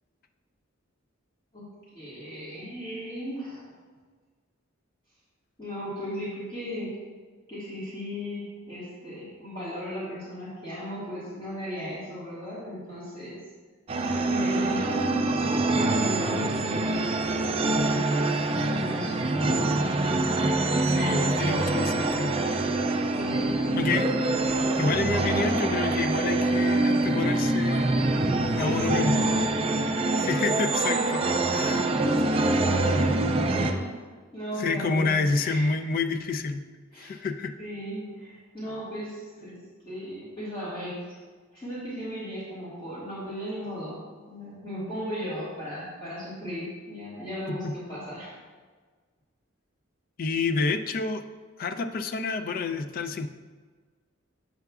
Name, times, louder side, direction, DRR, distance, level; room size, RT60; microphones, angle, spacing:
voice 1, 1.9-3.6 5.6-7.0 7.5-13.4 14.3-19.7 23.1-24.0 28.6-29.4 30.1-33.1 33.4-33.9 34.3-35.7 36.9-37.1 37.6-39.6 39.9-41.2 41.5-48.4, equal, 25° left, -11 dB, 1.7 m, -36 dB
sound 1, 13.9-33.7, right 2 dB, 30° right, 0.4 m, -25 dB
voice 2, 20.8-22.4 23.8-24.1 24.8-27.9 28.5-29.2 30.2-31.0 31.5-31.9 34.6-36.6 37.0-37.5 47.5-47.7 50.2-51.2 51.6-53.3, left 4 dB, 45° left, 9 dB, 0.3 m, -28 dB
7.8 x 5.7 x 2.4 m, 1.4 s
head